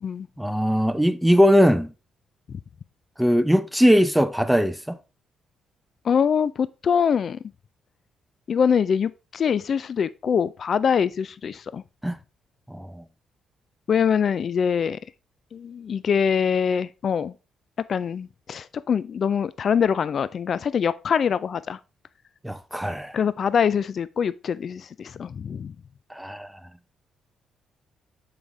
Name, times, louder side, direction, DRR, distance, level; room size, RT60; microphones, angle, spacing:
voice 1, 0.4-1.9 3.2-5.0 12.0-12.2 12.7-13.0 22.4-23.1 26.1-26.5, equal, 5° right, 0.6 m, -20 dB
voice 2, 6.0-7.4 8.5-11.8 13.9-15.0 15.5-17.3 17.9-21.8 23.1-25.7, left 7 dB, 50° left, 0.3 m, -24 dB
7.1 x 5.0 x 3.8 m
cardioid pair, 90°, 0 cm